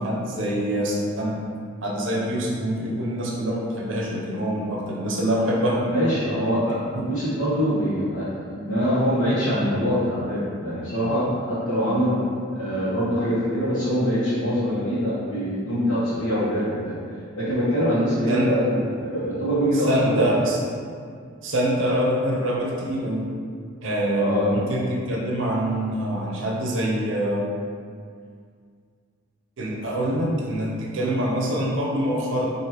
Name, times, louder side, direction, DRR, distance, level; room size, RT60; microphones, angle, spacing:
voice 1, 0.0-1.4 1.8-5.9 6.9-7.1 18.3-18.6 19.7-20.6 21.4-23.3 23.8-27.4 29.6-32.5, right 1 dB, 65° right, -3 dB, 0.6 m, -25 dB
voice 2, 5.9-12.2 12.5-17.0 17.4-20.4 24.1-24.5, equal, 85° left, -12 dB, 1.1 m, -24 dB
4.8 x 2.6 x 2.9 m, 2.2 s
head